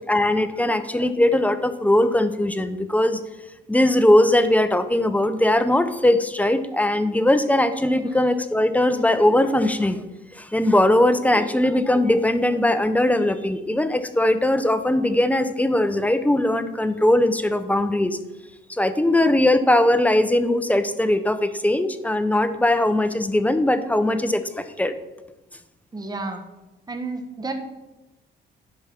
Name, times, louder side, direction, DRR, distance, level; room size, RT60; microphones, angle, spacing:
voice 1, 0.0-3.2 3.7-10.0 10.3-18.2 18.7-24.9, left 1 dB, 5° left, 11 dB, 0.7 m, -20 dB
voice 2, 25.9-26.4 26.9-27.5, right 3 dB, 20° right, 5 dB, 1.2 m, -31 dB
10.5 x 4.7 x 5.8 m, 1.0 s
cardioid pair, 90°, 20 cm